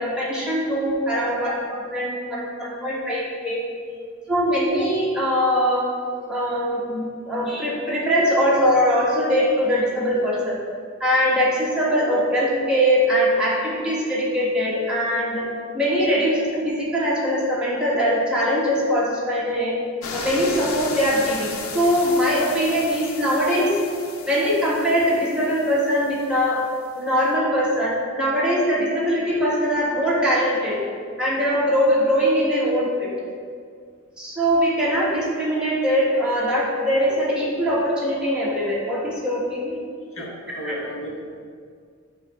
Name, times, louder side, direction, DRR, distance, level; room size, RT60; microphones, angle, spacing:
voice 1, 0.0-3.6 4.3-5.9 6.3-10.5 11.0-15.4 15.7-19.8 20.1-23.8 24.3-26.6 27.0-30.7 31.2-33.1 34.2-39.8 40.6-40.8, equal, 5° right, -7 dB, 1.4 m, -22 dB
sound 1, 20.0-26.6 26.9-27.0, left 4 dB, 85° left, 0.6 m, -35 dB
voice 2, 40.1-41.4, equal, 70° left, -2 dB, 1.4 m, -34 dB
6.8 x 3.3 x 5.9 m, 2.1 s
head